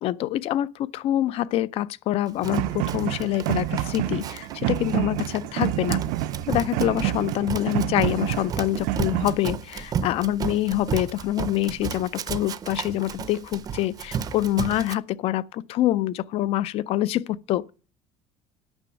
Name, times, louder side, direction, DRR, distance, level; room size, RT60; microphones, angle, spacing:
voice 1, 0.0-6.0 6.5-17.7, left 14 dB, 45° left, 0.4 m, -26 dB
Run, 2.4-14.9, right 7 dB, 30° right, 0.5 m, -33 dB
sound 1, 2.4-9.4, right 15 dB, 85° right, 0.5 m, -28 dB
8.9 x 6.1 x 7.0 m
cardioid pair, 155°, 13 cm